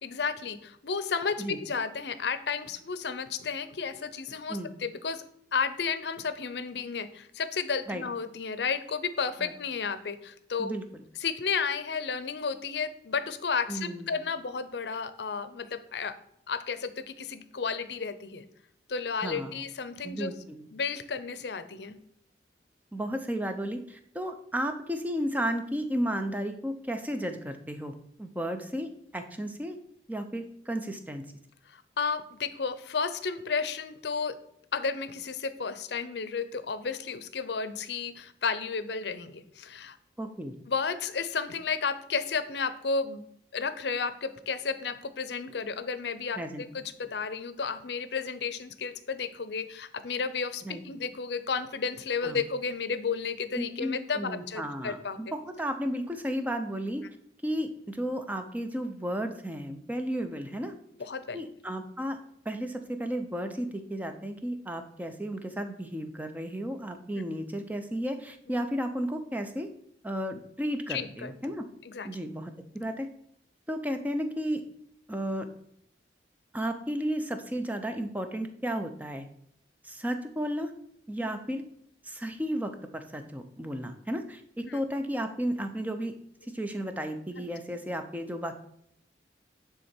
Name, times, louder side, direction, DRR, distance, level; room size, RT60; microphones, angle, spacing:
voice 1, 0.0-5.2 5.5-10.7 11.2-16.1 16.5-18.4 18.9-20.3 20.7-22.0 31.7-34.3 34.7-40.0 40.7-43.2 43.5-55.2 61.0-61.4 70.9-71.5 71.9-72.1 81.2-81.3 84.6-84.8 87.4-87.5, left 5 dB, 70° left, 12 dB, 0.6 m, -32 dB
voice 2, 13.7-14.1 19.2-19.6 20.0-20.7 22.9-29.8 30.1-31.2 40.2-40.5 46.4-46.6 50.6-50.8 52.2-52.4 53.6-57.0 57.4-60.7 61.3-62.2 62.5-69.7 70.0-71.7 72.0-73.1 73.7-74.6 75.1-75.5 76.5-79.3 79.8-80.7 81.1-81.6 82.0-86.1 86.5-88.6, equal, 10° right, 7 dB, 0.5 m, -33 dB
9.6 x 3.7 x 4.4 m, 0.72 s
head